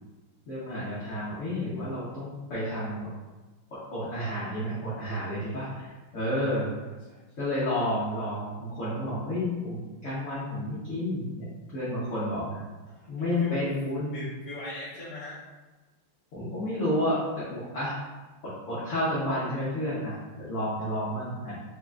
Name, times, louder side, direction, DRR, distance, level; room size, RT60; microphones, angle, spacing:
voice 1, 0.5-3.1 3.9-6.7 7.4-11.4 11.7-12.6 13.1-14.2 16.3-18.0 18.7-21.6, left 1 dB, 50° left, -10 dB, 1.0 m, -30 dB
voice 2, 12.9-13.6 14.1-15.4, left 1 dB, 20° left, -11 dB, 1.3 m, -41 dB
4.4 x 2.9 x 2.4 m, 1.2 s
omnidirectional pair, 2.4 m